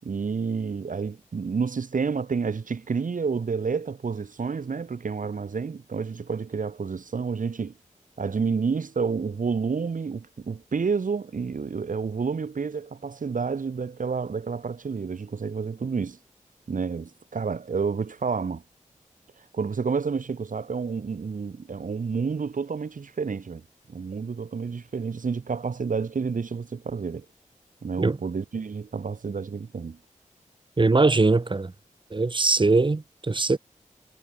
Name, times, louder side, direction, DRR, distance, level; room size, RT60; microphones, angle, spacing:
voice 1, 0.0-7.7 8.2-16.2 16.7-18.6 19.5-23.6 23.9-27.3 27.8-30.0, right 5 dB, 75° right, 6.0 m, -29 dB
voice 2, 30.8-31.7 32.1-33.6, right 3 dB, 35° right, 3.3 m, -21 dB
wide cardioid pair, 105°, 14 cm